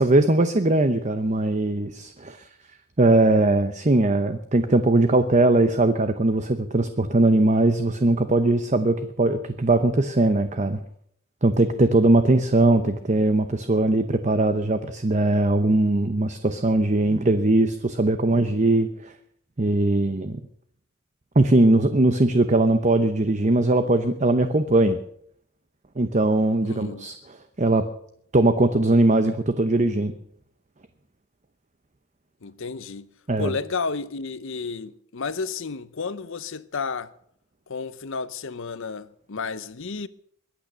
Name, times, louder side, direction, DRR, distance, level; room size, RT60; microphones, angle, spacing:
voice 1, 0.0-2.5 3.0-10.8 11.4-19.1 19.6-20.4 21.4-25.0 26.0-27.9 28.3-30.1 33.3-33.5, right 2 dB, 35° right, 0.8 m, -20 dB
voice 2, 26.6-27.1 32.4-33.1 33.4-37.1 37.7-40.1, left 4 dB, 60° left, 0.8 m, -32 dB
22.0 x 9.0 x 6.7 m
head